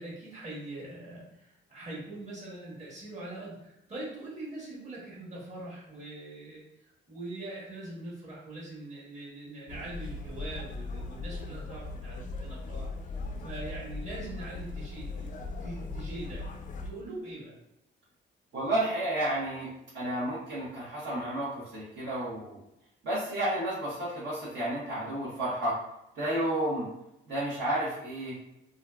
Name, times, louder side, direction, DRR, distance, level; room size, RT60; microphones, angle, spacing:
voice 1, 0.0-12.9 13.4-15.3 15.6-16.5 16.8-17.6, right 2 dB, 35° right, -6 dB, 1.3 m, -42 dB
sound 1, 9.7-16.9, left 3 dB, 40° left, 0.4 m, -39 dB
voice 2, 18.5-19.7 19.9-22.6 23.0-25.8 26.2-26.9 27.3-28.3, right 1 dB, 65° right, -8 dB, 0.9 m, -31 dB
2.7 x 2.3 x 2.3 m, 0.86 s
cardioid pair, 90°, 20 cm